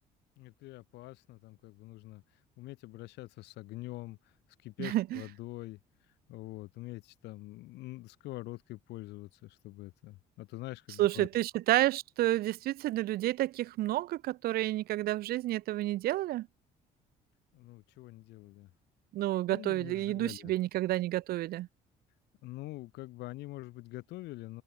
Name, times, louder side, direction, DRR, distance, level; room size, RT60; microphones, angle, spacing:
voice 1, 0.4-2.2 2.6-4.3 4.6-5.8 6.3-11.3 17.5-18.7 19.5-20.5 22.4-24.6, left 19 dB, 85° left, 2.0 m, -45 dB
voice 2, 4.8-5.2 11.0-16.5 19.1-21.7, right 16 dB, 65° right, 0.5 m, -30 dB
cardioid pair, 110°, 17 cm